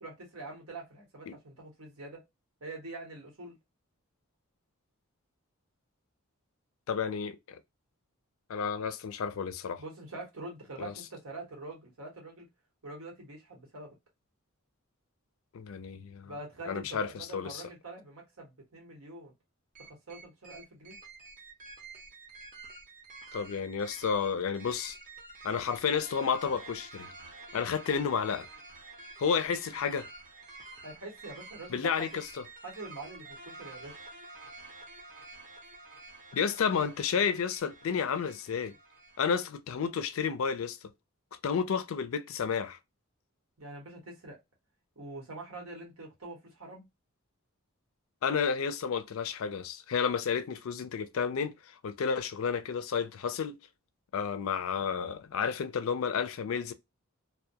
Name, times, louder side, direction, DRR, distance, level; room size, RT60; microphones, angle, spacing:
voice 1, 0.0-2.2 2.6-3.6 9.8-12.5 12.8-14.0 16.2-19.3 19.8-20.9 30.8-32.2 32.6-34.0 43.6-44.4 45.0-46.8, right 2 dB, 80° right, 1.1 m, -45 dB
voice 2, 6.9-7.6 8.5-9.8 10.8-10.9 15.5-16.3 16.7-17.6 23.3-25.0 25.4-27.1 27.5-28.5 29.2-30.1 31.7-32.4 36.3-38.7 39.2-40.8 41.4-42.8 48.2-51.5 51.8-53.6 54.1-56.7, left 6 dB, 70° left, 0.4 m, -31 dB
sound 1, 19.8-39.2, right 3 dB, 40° right, 0.7 m, -49 dB
2.2 x 2.1 x 2.7 m
head